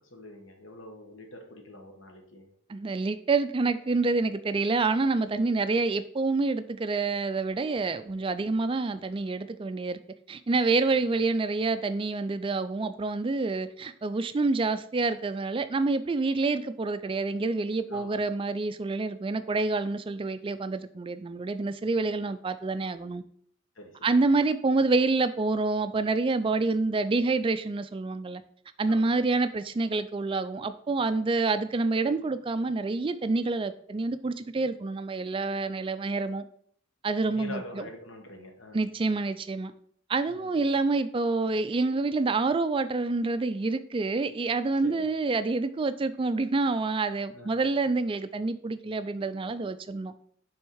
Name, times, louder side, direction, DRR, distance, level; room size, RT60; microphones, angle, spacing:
voice 1, 0.0-2.5 5.4-5.6 10.9-11.2 17.9-18.2 23.7-24.2 28.9-29.2 37.3-38.8 40.3-40.7 44.8-45.1 47.3-47.6, left 1 dB, 65° left, 3 dB, 1.2 m, -45 dB
voice 2, 2.7-10.0 10.3-23.2 24.0-28.4 28.8-36.4 37.0-37.6 38.7-39.7 40.1-50.1, right 3 dB, 25° right, 12 dB, 0.3 m, -27 dB
6.4 x 3.6 x 4.6 m, 0.62 s
head